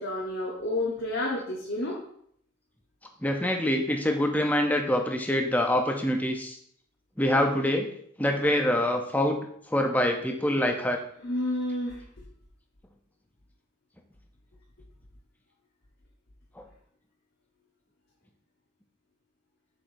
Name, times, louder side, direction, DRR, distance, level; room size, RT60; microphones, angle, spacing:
voice 1, 0.0-2.0 11.2-12.2, left 1 dB, 60° left, -4 dB, 1.1 m, -30 dB
voice 2, 3.2-6.6 7.2-7.9 8.2-9.4 9.7-11.0 16.6-16.7, left 1 dB, 10° left, 3 dB, 0.6 m, -25 dB
7.3 x 5.0 x 2.6 m, 0.67 s
head